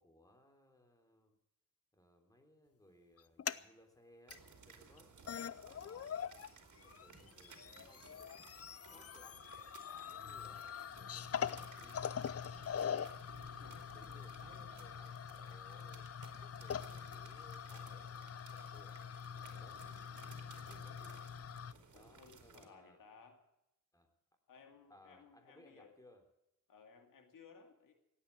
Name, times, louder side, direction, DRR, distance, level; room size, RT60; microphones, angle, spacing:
voice 1, 0.0-1.4 1.9-6.3 6.8-8.4 8.9-9.4 10.1-13.1 13.9-20.0 20.5-21.2 21.9-23.0 23.9-24.1 24.9-26.2, left 1 dB, 10° left, 4 dB, 3.5 m, -64 dB
sound 1, 3.2-3.6 4.3-4.4 5.0-5.1 5.3-6.5 6.8-21.7, left 8 dB, 50° left, 0.6 m, -44 dB
sound 2, 4.3-22.7, right 4 dB, 65° right, 2.9 m, -59 dB
voice 2, 13.6-14.3 21.9-23.4 24.5-26.0 26.7-27.9, left 5 dB, 85° left, 5 dB, 2.3 m, -61 dB
17.0 x 9.0 x 8.4 m, 0.83 s
cardioid pair, 70°, 32 cm